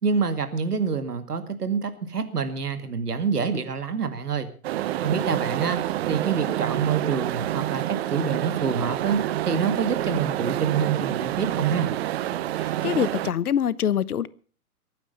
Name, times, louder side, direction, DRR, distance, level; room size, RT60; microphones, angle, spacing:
voice 1, 0.0-4.5 5.0-5.8 6.1-9.2 9.5-11.9, right 5 dB, 80° right, 2.2 m, -26 dB
sound 1, 4.6-13.3, right 13 dB, 45° right, 1.0 m, -28 dB
voice 2, 12.6-14.3, left 9 dB, 75° left, 1.0 m, -25 dB
22.5 x 9.2 x 5.4 m
figure-of-eight pair, 115°, 45 cm